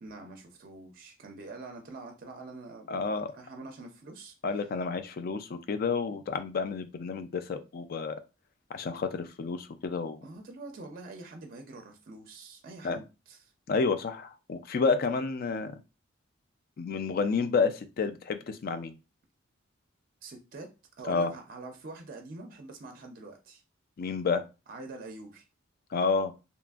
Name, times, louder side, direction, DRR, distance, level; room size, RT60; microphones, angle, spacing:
voice 1, 0.0-4.3 10.2-13.4 20.2-20.7 21.0-23.6 24.7-25.4, right 2 dB, 45° right, 0.4 m, -45 dB
voice 2, 2.9-3.3 4.4-8.1 8.7-10.2 12.8-13.0 13.7-15.7 16.8-18.9 21.1-21.3 24.0-24.5 25.9-26.3, left 4 dB, 45° left, 0.3 m, -30 dB
2.8 x 2.4 x 2.3 m
head